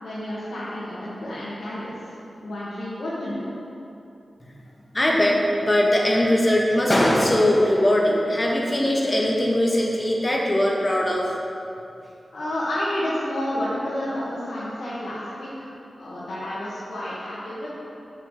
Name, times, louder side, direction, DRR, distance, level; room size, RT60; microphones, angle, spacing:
voice 1, 0.0-2.1 2.4-3.5 12.3-17.7, left 1 dB, 75° left, -10 dB, 1.7 m, -30 dB
voice 2, 4.9-11.2, left 1 dB, 30° left, -2 dB, 1.6 m, -20 dB
7.0 x 5.7 x 6.6 m, 2.8 s
cardioid pair, 50°, 0 cm